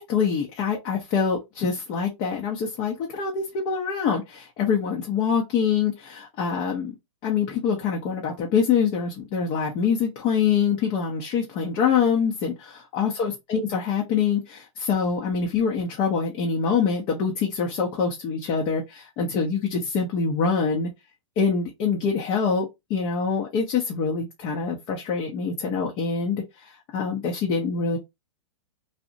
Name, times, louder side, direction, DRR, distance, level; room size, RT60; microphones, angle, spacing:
voice 1, 0.0-7.0 7.2-20.9 21.4-28.0, left 6 dB, 30° left, 0.5 m, -25 dB
2.7 x 2.0 x 2.5 m
hypercardioid pair, 140°, 17 cm